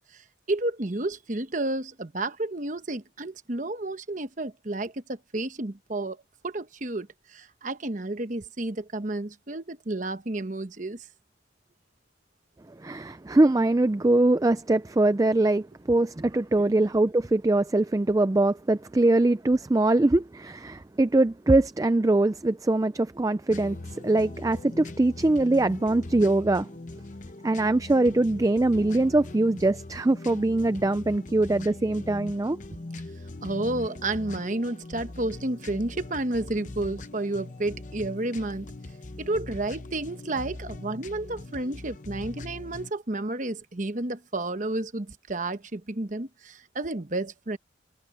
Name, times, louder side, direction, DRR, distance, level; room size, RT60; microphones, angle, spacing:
voice 1, 0.1-6.2 6.4-11.0 16.6-16.8 33.4-38.7 39.2-47.6, right 2 dB, 40° right, 1.1 m, -31 dB
voice 2, 12.8-26.7 27.4-32.6, right 2 dB, 15° right, 0.3 m, -23 dB
sound 1, 23.5-42.9, left 2 dB, 40° left, 0.8 m, -41 dB
head